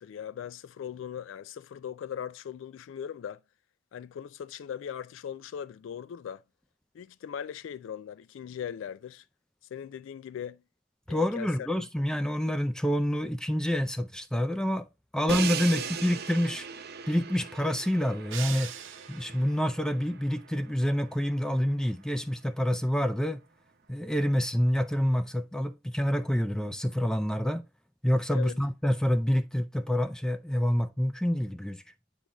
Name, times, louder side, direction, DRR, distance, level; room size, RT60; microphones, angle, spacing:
voice 1, 0.0-3.4 3.9-6.4 6.9-9.2 9.7-10.6 11.1-11.8 15.7-15.9 28.3-28.6, left 8 dB, 80° left, 0.3 m, -39 dB
voice 2, 11.1-14.9 15.1-16.7 17.1-18.7 19.1-23.4 23.9-27.6 28.0-31.8, equal, 5° left, 0.3 m, -27 dB
Crash cymbal, 15.3-21.3, right 6 dB, 55° right, 0.6 m, -38 dB
sound 1, 18.3-19.6, right 10 dB, 90° right, 0.8 m, -40 dB
8.4 x 3.8 x 2.9 m
head